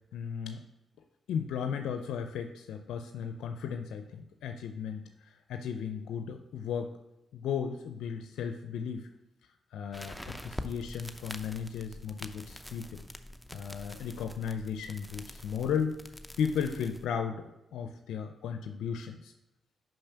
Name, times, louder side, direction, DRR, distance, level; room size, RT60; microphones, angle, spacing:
voice 1, 0.1-0.6 1.3-6.9 7.3-9.1 9.7-13.0 13.5-16.0 16.4-19.3, left 7 dB, 80° left, 7 dB, 0.4 m, -35 dB
sound 1, 9.9-17.1, equal, ahead, 0.6 m, -45 dB
5.4 x 5.4 x 5.7 m, 0.92 s
supercardioid pair, 50°, 0 cm